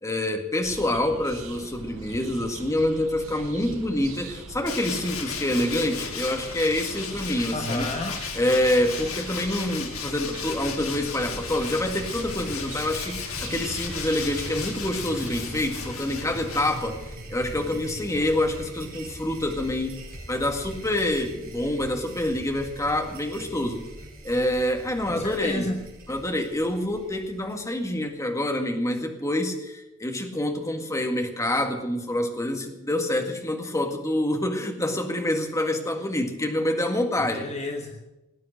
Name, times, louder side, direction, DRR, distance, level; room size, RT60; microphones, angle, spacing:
voice 1, 0.0-7.9 8.3-17.0 17.3-20.0 20.3-23.9 24.2-25.7 26.1-37.5, left 1 dB, 15° left, 4 dB, 1.9 m, -27 dB
sound 1, 0.6-15.6, right 2 dB, 80° right, 3.7 m, -41 dB
Tools, 4.7-17.2, left 6 dB, 80° left, 2.3 m, -35 dB
voice 2, 7.5-8.2 25.1-25.8 37.3-38.0, left 1 dB, 30° left, 3 dB, 1.4 m, -31 dB
sound 2, 9.5-28.1, right 1 dB, 45° right, 4.9 m, -42 dB
18.5 x 9.3 x 7.8 m, 0.99 s
head